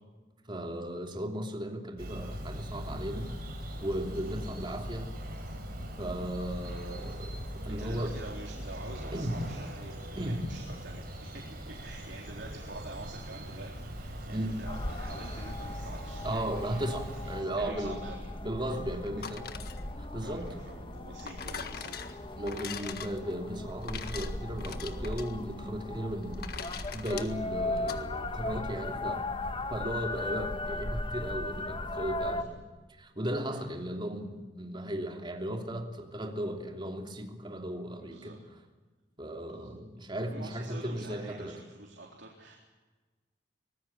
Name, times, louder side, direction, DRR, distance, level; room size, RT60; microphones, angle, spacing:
voice 1, 0.5-3.3 3.8-5.1 6.0-8.1 9.1-9.4 10.2-10.4 14.3-14.6 16.2-18.0 18.4-19.5 20.0-20.5 22.4-26.4 26.9-29.2 29.7-32.6 33.0-38.3 39.2-41.6, right 1 dB, 25° right, 3 dB, 3.0 m, -36 dB
Bird vocalization bird call bird song, 2.0-17.4, equal, 60° right, 5.6 m, -41 dB
voice 2, 7.7-16.9 17.3-18.3 18.7-19.0 20.2-21.9 25.6-25.7 26.3-26.4 33.5-33.6 38.0-38.4 39.3-39.8 40.3-42.6, right 2 dB, 85° right, -1 dB, 3.8 m, -47 dB
sound 1, 14.6-32.4, left 2 dB, 30° left, 1.4 m, -37 dB
sound 2, 19.1-28.0, left 6 dB, 60° left, 1.7 m, -43 dB
25.0 x 19.0 x 8.7 m, 1.3 s
head